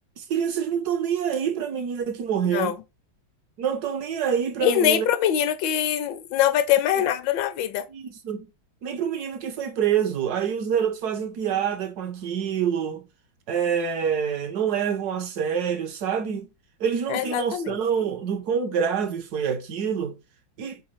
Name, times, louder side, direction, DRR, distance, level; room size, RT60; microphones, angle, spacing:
voice 1, 0.2-2.8 3.6-5.1 7.9-8.5 8.8-13.0 13.5-16.5 16.8-20.1 20.6-20.8, right 7 dB, 70° right, 1.1 m, -26 dB
voice 2, 4.6-7.9 17.1-17.8, left 10 dB, 80° left, 1.3 m, -23 dB
4.3 x 3.9 x 3.0 m
omnidirectional pair, 2.0 m